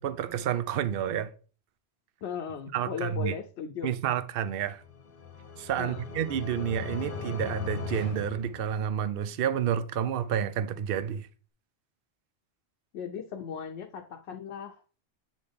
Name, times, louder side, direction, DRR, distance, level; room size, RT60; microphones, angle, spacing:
voice 1, 0.0-1.3 2.7-3.3 3.8-4.8 5.6-11.3, right 9 dB, 65° right, 0.7 m, -30 dB
voice 2, 2.2-3.9 5.8-6.0 12.9-14.8, left 7 dB, 75° left, 0.9 m, -37 dB
sound 1, 4.7-9.2, left 6 dB, 55° left, 1.0 m, -39 dB
8.1 x 4.1 x 3.4 m
omnidirectional pair, 1.1 m